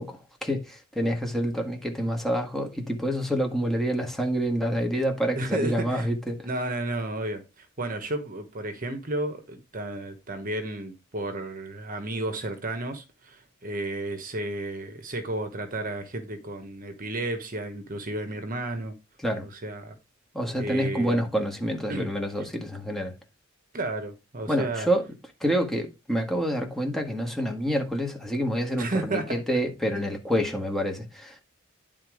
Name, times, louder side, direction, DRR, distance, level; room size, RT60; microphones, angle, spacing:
voice 1, 0.0-6.5 19.2-19.5 20.3-23.1 24.5-25.1 25.4-31.4, equal, ahead, 1.7 m, -27 dB
voice 2, 5.3-6.1 6.4-18.9 19.6-20.0 20.6-21.3 21.9-22.1 23.7-24.9 28.8-29.3 30.0-30.1, right 2 dB, 40° right, 1.1 m, -32 dB
10.5 x 3.9 x 4.9 m
head